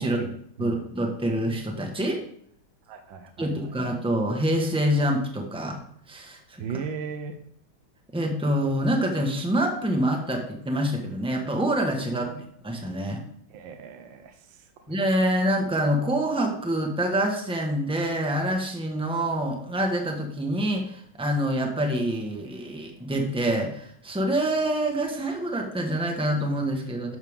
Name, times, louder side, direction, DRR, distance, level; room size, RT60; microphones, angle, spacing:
voice 1, 0.0-0.8 2.9-3.7 6.6-7.4 12.0-12.4 13.5-14.9, right 6 dB, 70° right, 5 dB, 1.5 m, -37 dB
voice 2, 0.6-2.2 3.4-5.8 6.1-6.4 8.1-12.3 12.6-13.2 14.9-27.2, right 1 dB, 5° right, 2 dB, 1.0 m, -26 dB
12.0 x 6.5 x 3.6 m, 0.66 s
omnidirectional pair, 2.3 m